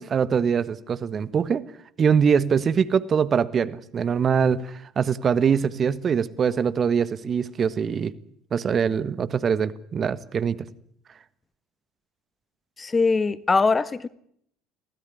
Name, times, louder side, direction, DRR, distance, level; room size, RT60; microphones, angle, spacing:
voice 1, 0.0-1.6 2.0-8.1 8.5-10.6, right 7 dB, 40° right, 1.4 m, -23 dB
voice 2, 12.8-14.1, left 4 dB, 25° left, 1.3 m, -21 dB
24.5 x 17.0 x 10.0 m
hypercardioid pair, 65°, 0 cm